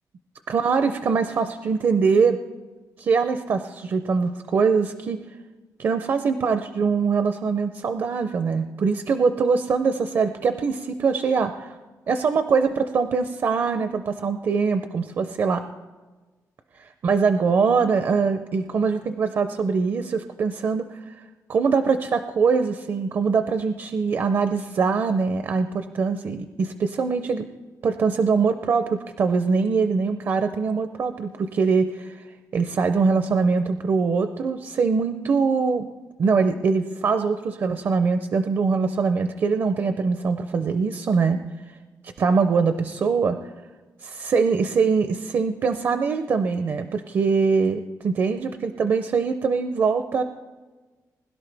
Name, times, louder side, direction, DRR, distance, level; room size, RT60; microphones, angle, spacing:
voice 1, 0.5-2.4 3.0-5.2 5.8-11.8 12.1-15.6 17.0-21.0 21.5-27.5 27.8-32.2 32.5-35.9 36.2-41.4 42.2-43.4 44.0-50.2, right 5 dB, 45° right, 9 dB, 0.5 m, -23 dB
20.5 x 11.5 x 3.4 m, 1.3 s
wide cardioid pair, 175°, 6 cm